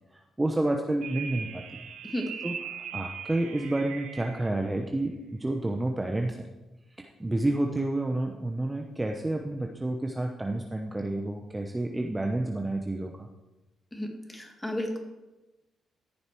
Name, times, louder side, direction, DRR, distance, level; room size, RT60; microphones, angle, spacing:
voice 1, 0.4-1.6 2.4-6.5 7.0-13.3, right 1 dB, 15° right, 3 dB, 0.8 m, -30 dB
sound 1, 1.0-4.5, right 7 dB, 80° right, 1.0 m, -40 dB
voice 2, 13.9-15.0, equal, 10° left, 3 dB, 1.9 m, -33 dB
14.0 x 6.5 x 4.5 m, 1.1 s
cardioid pair, 90°, 0 cm